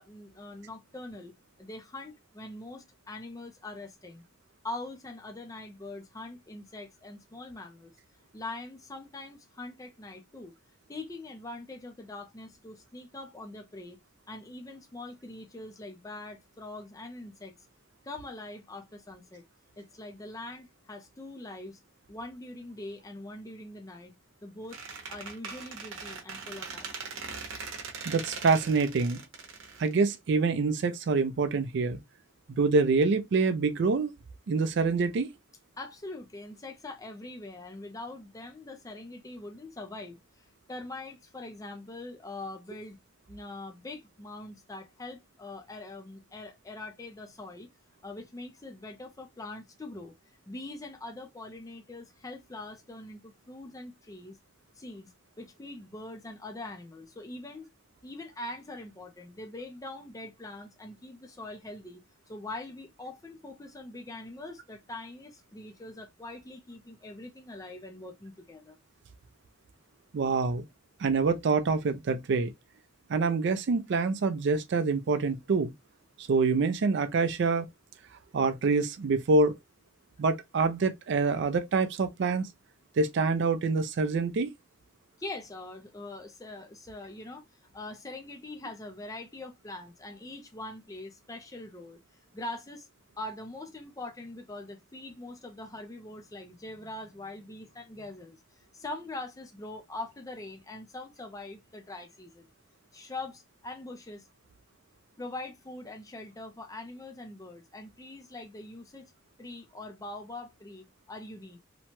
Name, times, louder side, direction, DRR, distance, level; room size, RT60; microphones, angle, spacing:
voice 1, 0.0-1.3 1.6-4.2 4.6-8.0 8.3-10.6 10.9-14.0 14.3-17.5 18.0-19.4 19.8-21.8 22.1-24.1 24.4-24.8 25.1-27.0 35.8-43.0 43.3-47.7 48.0-50.1 50.5-54.4 54.7-57.7 58.0-62.0 62.3-68.8 85.2-92.0 92.3-92.9 93.2-102.5 102.9-104.3 105.2-109.1 109.4-111.6, left 2 dB, 15° left, 0.5 m, -43 dB
Squeak, 24.7-30.5, right 5 dB, 80° right, 0.8 m, -41 dB
voice 2, 28.0-29.2 29.8-32.0 32.5-34.1 34.5-35.3 70.1-70.6 71.0-72.5 73.1-75.7 76.2-77.7 78.3-79.6 80.2-82.5 83.0-84.5, right 4 dB, 60° right, 0.4 m, -26 dB
2.9 x 2.2 x 2.8 m
head